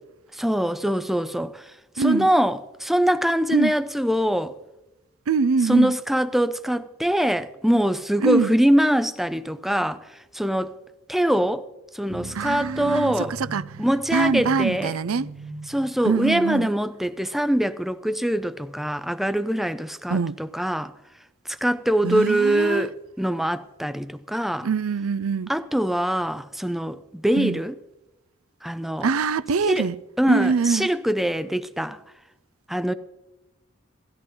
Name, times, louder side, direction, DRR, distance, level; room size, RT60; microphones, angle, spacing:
voice 1, 0.3-4.5 5.6-10.1 10.3-10.8 11.1-11.7 11.9-13.3 13.8-15.0 15.7-20.9 21.5-24.7 25.5-27.7 28.6-29.1 29.7-29.9 30.2-32.0 32.7-32.9, equal, ahead, 0.4 m, -23 dB
voice 2, 2.0-2.3 3.5-3.7 5.3-5.9 8.2-8.5 12.3-13.6 14.1-15.3 16.0-16.7 20.1-20.4 22.0-22.9 24.6-25.5 27.3-27.6 29.0-30.0 30.3-30.9, right 5 dB, 85° right, 0.5 m, -23 dB
sound 1, 12.1-16.7, right 2 dB, 65° right, 1.8 m, -39 dB
17.5 x 13.5 x 3.9 m
head